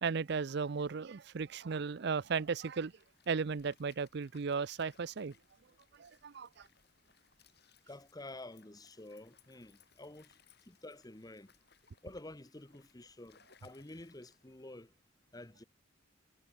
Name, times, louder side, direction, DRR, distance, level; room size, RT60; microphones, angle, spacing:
voice 1, 0.0-2.9 3.3-5.3 5.9-6.7, right 5 dB, 60° right, 0.5 m, -35 dB
Stream, 1.7-14.8, left 7 dB, 55° left, 7.0 m, -69 dB
voice 2, 7.9-11.5 12.0-14.9 15.3-15.6, left 2 dB, 20° left, 1.1 m, -50 dB
head